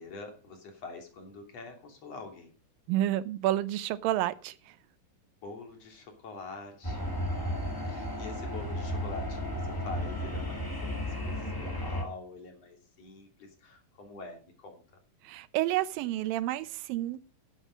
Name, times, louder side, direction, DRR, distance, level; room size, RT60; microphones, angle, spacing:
voice 1, 0.0-2.5 5.4-10.9 11.2-14.8, left 4 dB, 45° left, 4 dB, 3.9 m, -45 dB
voice 2, 2.9-4.8 15.2-17.3, right 14 dB, 80° right, 15 dB, 2.5 m, -30 dB
sound 1, 6.8-12.0, left 1 dB, 10° left, 1.4 m, -34 dB
12.0 x 9.2 x 5.2 m, 0.36 s
omnidirectional pair, 4.0 m